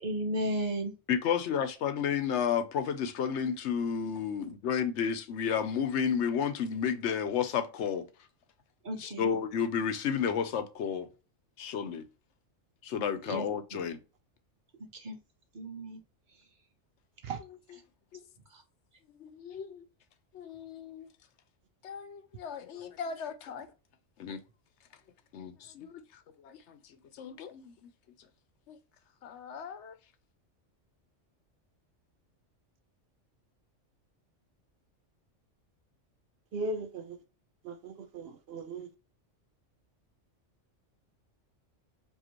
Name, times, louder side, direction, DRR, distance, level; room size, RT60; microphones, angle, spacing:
voice 1, 0.0-0.9 8.8-9.3 13.3-13.5 13.7-13.8 15.0-15.2 15.5-16.0, right 1 dB, 45° right, 1.0 m, -33 dB
voice 2, 1.1-8.1 8.9-11.1 11.6-12.0 12.8-14.0 18.1-18.2 19.2-19.8 20.3-21.1 21.8-23.7 24.2-24.4 25.3-26.0 26.4-26.8 27.1-27.7 28.7-28.8 29.2-29.9, left 7 dB, 70° left, 0.9 m, -32 dB
voice 3, 36.5-37.2 37.6-38.9, right 2 dB, 65° right, 0.7 m, -37 dB
4.9 x 2.7 x 3.0 m
omnidirectional pair, 1.2 m